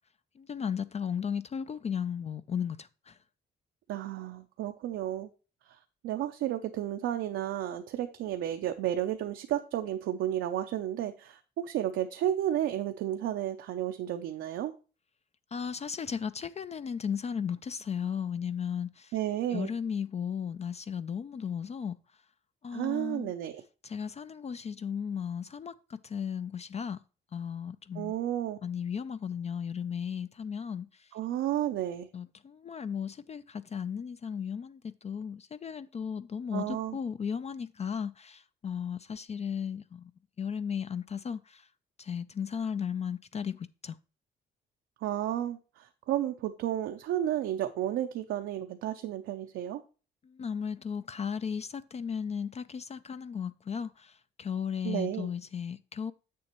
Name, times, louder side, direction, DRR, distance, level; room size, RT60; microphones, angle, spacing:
voice 1, 0.4-3.2 15.5-19.1 19.5-22.0 22.6-23.3 23.8-27.0 27.3-28.1 28.6-31.1 32.1-40.1 40.4-41.7 42.0-44.0 50.2-56.1, left 7 dB, 35° left, 0.4 m, -35 dB
voice 2, 3.9-5.3 5.6-5.8 6.0-14.7 19.1-19.7 22.7-23.6 28.0-28.6 31.1-32.1 36.5-37.0 45.0-49.8 54.8-55.3, right 12 dB, 80° right, 0.6 m, -32 dB
7.8 x 6.9 x 3.0 m
cardioid pair, 90°, 20 cm